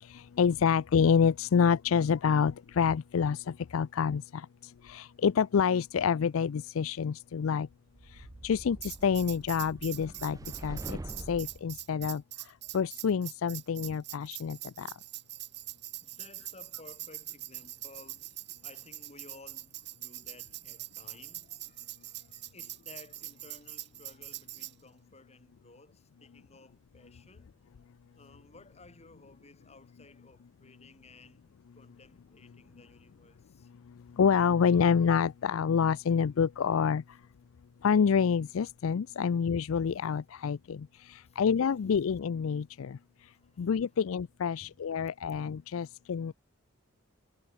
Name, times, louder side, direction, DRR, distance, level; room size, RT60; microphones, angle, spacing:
voice 1, 0.0-7.7 8.1-11.0 11.3-14.9 33.9-37.2 37.8-43.0 43.6-46.3, left 6 dB, 80° left, 0.4 m, -28 dB
sound 1, 7.9-11.6, right 2 dB, 15° right, 0.4 m, -44 dB
Tambourine, 8.8-24.7, right 16 dB, 55° right, 3.3 m, -43 dB
voice 2, 12.3-12.7 14.8-15.2 16.0-27.5 28.1-31.4 31.7-33.7 40.0-40.1 40.5-40.6 41.2-41.4 41.7-41.9 43.2-43.7 44.6-44.8 45.9-46.0, left 2 dB, 30° left, 3.4 m, -56 dB
head